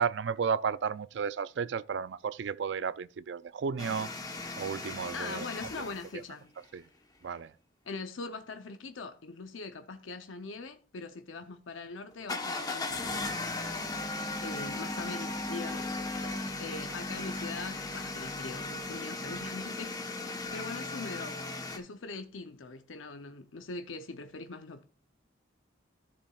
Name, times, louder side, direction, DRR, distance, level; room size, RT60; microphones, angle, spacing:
voice 1, 0.0-4.1 4.6-5.4 5.7-5.8 6.7-6.8 7.2-7.5 16.2-16.6, right 6 dB, 60° right, 0.4 m, -33 dB
sound 1, 3.8-6.1 12.2-21.8, left 2 dB, 20° left, 1.0 m, -37 dB
voice 2, 5.1-6.5 7.8-13.5 14.4-16.0 16.6-21.4 21.6-24.8, left 3 dB, 80° left, 0.7 m, -42 dB
13.5 x 7.0 x 2.4 m
head